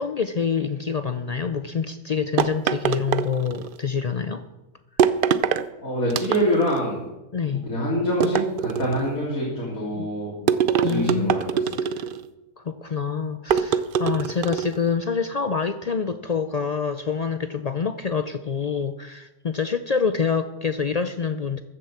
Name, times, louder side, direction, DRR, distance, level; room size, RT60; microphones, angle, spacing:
voice 1, 0.0-4.4 7.3-7.7 10.0-10.1 10.4-10.5 10.8-11.4 12.6-21.6, left 6 dB, 65° left, 10 dB, 0.3 m, -26 dB
sound 1, 2.4-3.8 5.0-5.7 6.1-6.8 8.2-9.1 10.5-12.3 13.5-14.8, right 8 dB, 60° right, 0.6 m, -23 dB
voice 2, 5.8-7.0 7.7-10.3 10.8-11.8, equal, 85° left, -6 dB, 3.5 m, -25 dB
14.5 x 7.7 x 7.1 m, 1.0 s
omnidirectional pair, 1.4 m